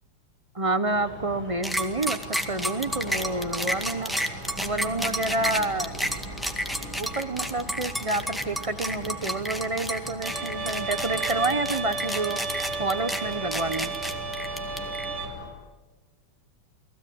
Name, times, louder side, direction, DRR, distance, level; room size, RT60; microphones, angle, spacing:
voice 1, 0.5-4.1 4.6-6.0 7.0-12.4 12.8-13.9, right 2 dB, 30° right, 11 dB, 0.6 m, -28 dB
sound 1, 0.8-15.5, equal, 70° right, 7.6 m, -40 dB
sound 2, 1.6-15.0, equal, ahead, 1.7 m, -31 dB
Bowed string instrument, 10.2-15.3, right 4 dB, 90° right, 3.5 m, -33 dB
30.0 x 20.0 x 8.8 m, 1.3 s
omnidirectional pair, 2.3 m